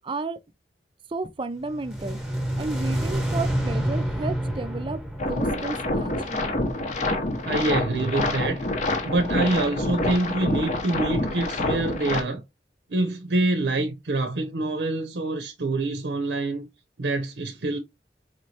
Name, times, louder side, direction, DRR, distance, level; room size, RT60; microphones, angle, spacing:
voice 1, 0.0-0.4 1.1-2.2 2.6-5.0 5.3-6.6, right 3 dB, 30° right, 0.4 m, -32 dB
sound 1, 1.7-6.8, right 1 dB, 5° right, 1.0 m, -28 dB
sound 2, 5.2-12.2, left 2 dB, 45° left, 0.7 m, -27 dB
voice 2, 7.4-8.7 9.0-12.4 12.9-16.7 17.0-17.8, right 2 dB, 80° right, 0.7 m, -26 dB
4.3 x 3.2 x 2.7 m
head